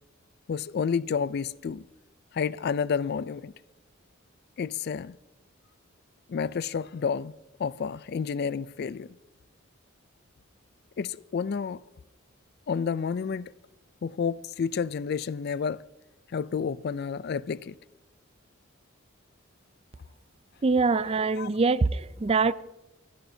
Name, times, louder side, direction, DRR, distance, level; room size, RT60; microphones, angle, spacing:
voice 1, 0.5-1.8 2.3-3.5 4.6-5.2 6.3-7.3 7.6-9.1 11.0-11.8 12.7-13.5 14.0-15.8 16.3-17.8 21.4-21.5, left 6 dB, 50° left, 0.3 m, -30 dB
voice 2, 20.6-22.5, right 4 dB, 30° right, 0.4 m, -24 dB
29.5 x 11.0 x 2.7 m
head